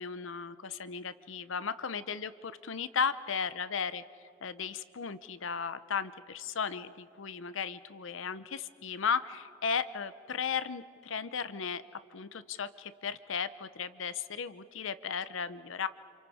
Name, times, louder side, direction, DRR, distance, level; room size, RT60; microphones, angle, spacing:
voice 1, 0.0-4.0 4.4-11.8 12.1-15.9, left 6 dB, 75° left, 14 dB, 0.7 m, -35 dB
29.5 x 27.5 x 4.9 m, 2.6 s
head